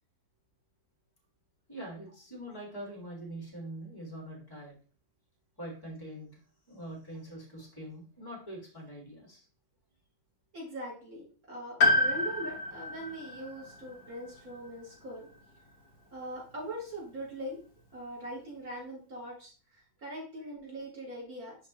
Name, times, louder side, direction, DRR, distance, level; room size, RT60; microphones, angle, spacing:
voice 1, 1.7-4.8 5.6-6.3 6.7-9.5, right 1 dB, 10° left, -1 dB, 2.5 m, -43 dB
voice 2, 10.5-15.3 16.1-17.6 17.9-19.5 20.0-21.6, equal, 50° right, -4 dB, 4.3 m, -41 dB
Piano, 11.8-15.9 17.2-17.3, left 2 dB, 60° left, 2.0 m, -30 dB
11.0 x 3.9 x 3.1 m, 0.37 s
omnidirectional pair, 2.0 m